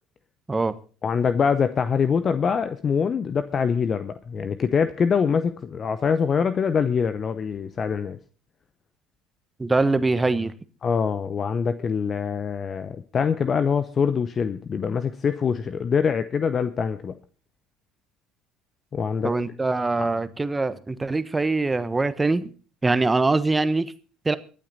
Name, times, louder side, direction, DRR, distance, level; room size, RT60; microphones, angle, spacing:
voice 1, 1.0-8.2 10.8-17.2 18.9-19.3 20.0-20.1, left 6 dB, 40° left, 0.8 m, -24 dB
voice 2, 9.6-10.5 19.2-22.5 22.8-23.9 24.2-24.4, right 3 dB, 15° right, 1.1 m, -23 dB
23.0 x 8.8 x 4.1 m
hypercardioid pair, 65°, 0 cm